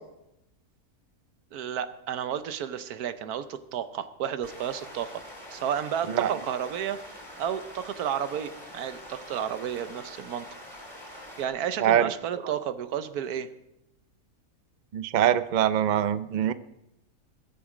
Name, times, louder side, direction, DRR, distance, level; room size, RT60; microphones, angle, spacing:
voice 1, 1.5-5.2 5.5-7.0 7.4-10.4 11.4-13.5, right 9 dB, 90° right, 11 dB, 1.3 m, -32 dB
sound 1, 4.4-11.5, equal, 15° left, 3.9 m, -45 dB
voice 2, 14.9-16.5, right 10 dB, 65° right, 13 dB, 0.4 m, -23 dB
21.0 x 8.4 x 5.0 m, 0.89 s
omnidirectional pair, 1.6 m